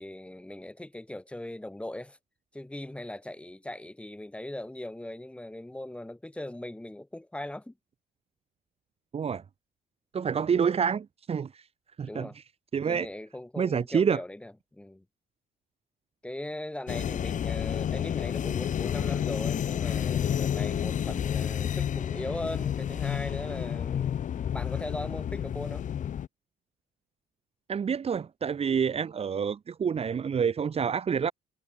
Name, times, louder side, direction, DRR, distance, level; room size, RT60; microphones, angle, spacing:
voice 1, 0.0-2.2 2.5-7.7 12.1-12.4 12.8-15.0 16.2-24.1 24.5-25.9, left 1 dB, 5° left, 6.1 m, -39 dB
voice 2, 10.1-11.5 12.0-12.3 12.7-13.1 13.6-14.2 27.7-31.3, right 7 dB, 35° right, 1.9 m, -27 dB
sound 1, 16.9-26.3, left 9 dB, 50° left, 1.9 m, -30 dB
cardioid pair, 110°, 17 cm